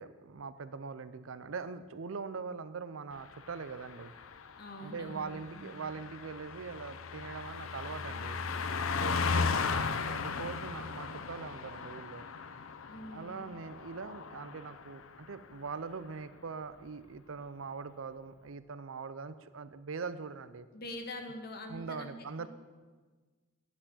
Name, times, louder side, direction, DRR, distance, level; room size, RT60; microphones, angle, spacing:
voice 1, 0.0-4.1 4.8-8.4 8.9-12.2 13.1-20.7 21.7-22.5, right 5 dB, 75° right, 13 dB, 0.5 m, -42 dB
Car passing by, 3.2-15.1 15.4-15.7, left 5 dB, 90° left, 0.6 m, -37 dB
voice 2, 4.6-5.9 12.9-13.5 20.7-22.5, left 1 dB, 50° left, 4 dB, 1.4 m, -45 dB
10.5 x 6.1 x 8.0 m, 1.4 s
head